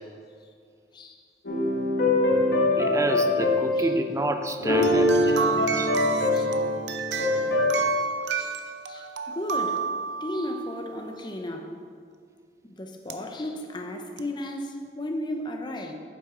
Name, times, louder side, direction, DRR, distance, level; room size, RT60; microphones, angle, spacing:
sound 1, 1.4-4.1 4.5-7.8, left 2 dB, 65° left, 1.5 m, -23 dB
voice 1, 2.8-5.9, right 1 dB, 15° right, 7 dB, 0.5 m, -28 dB
sound 2, 4.8-10.8 13.1-13.2 14.2-14.3, right 5 dB, 80° right, 0.5 m, -30 dB
voice 2, 8.9-9.8 10.2-11.7 12.6-15.9, left 1 dB, 25° left, 4 dB, 0.7 m, -35 dB
8.8 x 7.8 x 3.8 m, 2.2 s
head